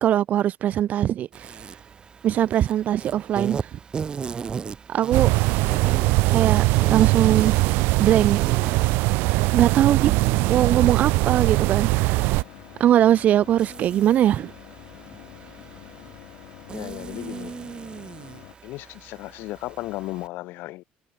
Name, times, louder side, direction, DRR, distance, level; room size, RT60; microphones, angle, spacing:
voice 1, 0.0-1.6 2.2-3.8 4.9-5.3 6.3-6.6 6.9-7.5 8.0-8.4 9.5-12.4 12.8-14.5, right 11 dB, 45° right, 1.4 m, -21 dB
Insect, 1.3-20.3, right 6 dB, 25° right, 1.6 m, -38 dB
sound 1, 5.1-12.4, right 24 dB, 80° right, 0.3 m, -21 dB
sound 2, 10.2-18.6, left 24 dB, 85° left, 2.5 m, -46 dB
voice 2, 16.7-17.5 18.6-20.8, left 18 dB, 70° left, 2.5 m, -35 dB
cardioid pair, 155°, 4 cm